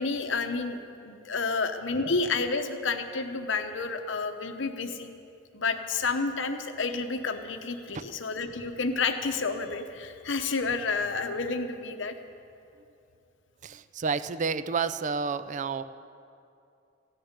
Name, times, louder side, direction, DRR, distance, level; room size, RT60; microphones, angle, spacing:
voice 1, 0.0-5.1 5.5-12.1, left 4 dB, 70° left, 7 dB, 0.9 m, -30 dB
voice 2, 13.6-15.8, right 5 dB, 40° right, 13 dB, 0.4 m, -30 dB
15.0 x 6.7 x 9.7 m, 2.6 s
head